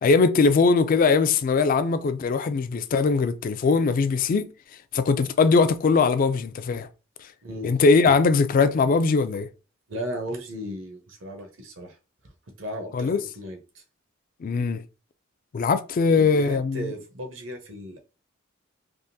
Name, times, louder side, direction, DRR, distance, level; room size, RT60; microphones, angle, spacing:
voice 1, 0.0-4.5 4.9-6.9 7.6-9.5 12.9-13.2 14.4-14.8 15.5-16.9, left 4 dB, 45° left, 0.3 m, -21 dB
voice 2, 7.4-7.7 9.9-12.0 12.6-13.8 16.0-18.0, equal, 70° right, 0.9 m, -36 dB
3.5 x 2.5 x 2.6 m
head